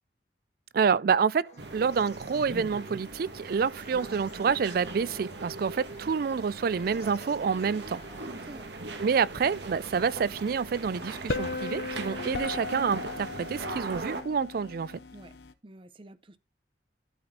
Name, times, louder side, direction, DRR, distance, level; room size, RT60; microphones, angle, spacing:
voice 1, 0.7-8.0 9.0-15.0, right 6 dB, 55° right, 0.4 m, -28 dB
sound 1, 1.4-8.3, left 3 dB, 40° left, 1.7 m, -55 dB
sound 2, 1.6-14.2, right 2 dB, 75° right, 1.5 m, -40 dB
sound 3, 9.3-15.5, left 3 dB, 70° left, 0.8 m, -38 dB
voice 2, 15.6-16.4, right 2 dB, 30° right, 0.7 m, -48 dB
12.0 x 4.2 x 4.2 m
head